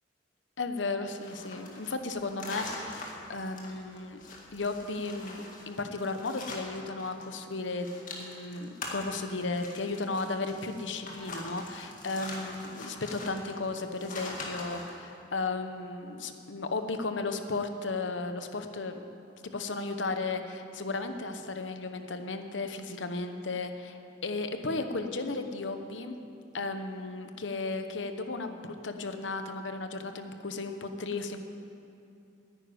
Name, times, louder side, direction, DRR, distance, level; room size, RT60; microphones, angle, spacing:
voice 1, 0.6-4.2 4.5-19.0 19.5-26.2 26.5-31.4, left 3 dB, 80° left, 8 dB, 0.9 m, -35 dB
sound 1, 1.1-7.3 7.5-15.0, left 2 dB, 45° left, 2.0 m, -43 dB
10.0 x 9.5 x 9.8 m, 2.7 s
head